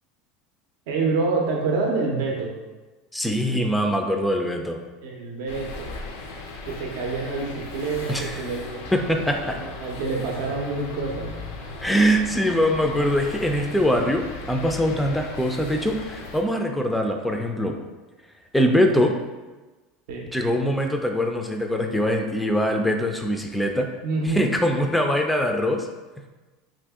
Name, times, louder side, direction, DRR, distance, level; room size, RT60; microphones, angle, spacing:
voice 1, 0.9-2.5 5.0-5.9 6.7-8.9 9.4-11.3 20.1-20.3 24.0-24.5, right 3 dB, 75° right, 0 dB, 0.5 m, -27 dB
voice 2, 3.1-4.8 8.1-8.4 8.9-9.6 11.8-17.7 18.5-19.1 20.3-23.9 24.3-25.9, equal, 5° left, 3 dB, 0.3 m, -23 dB
sound 1, 5.5-16.4, left 3 dB, 85° left, 0.5 m, -37 dB
2.8 x 2.6 x 3.5 m, 1.2 s
supercardioid pair, 125°, 0 cm